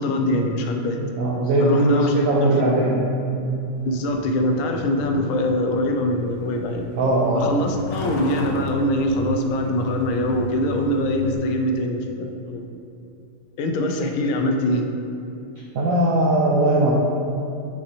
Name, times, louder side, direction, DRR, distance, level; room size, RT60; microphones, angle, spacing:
voice 1, 0.0-1.0 1.6-2.8 3.9-6.9 7.3-12.6 13.6-14.9, left 1 dB, 80° left, 4 dB, 1.4 m, -23 dB
voice 2, 1.0-3.0 3.3-3.5 7.0-7.5 15.7-16.9, right 1 dB, 85° right, -3 dB, 0.7 m, -20 dB
Truck, 3.8-11.4, left 1 dB, 65° left, 1.1 m, -35 dB
6.3 x 5.4 x 3.0 m, 2.7 s
omnidirectional pair, 2.3 m